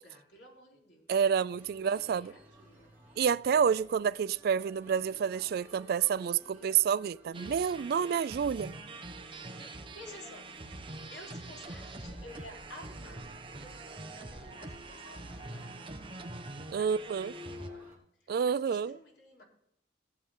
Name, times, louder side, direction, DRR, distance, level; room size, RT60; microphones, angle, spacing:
voice 1, 0.0-1.2 1.9-2.9 9.5-10.7 11.1-16.1 16.8-19.4, left 1 dB, 65° left, 3.7 m, -53 dB
voice 2, 1.1-2.3 3.2-8.8 16.7-17.3 18.3-19.0, right 7 dB, 55° right, 0.3 m, -29 dB
sound 1, 1.5-18.0, left 1 dB, 10° right, 3.8 m, -54 dB
sound 2, 7.3-17.7, right 2 dB, 30° right, 1.1 m, -45 dB
17.0 x 7.7 x 3.7 m
head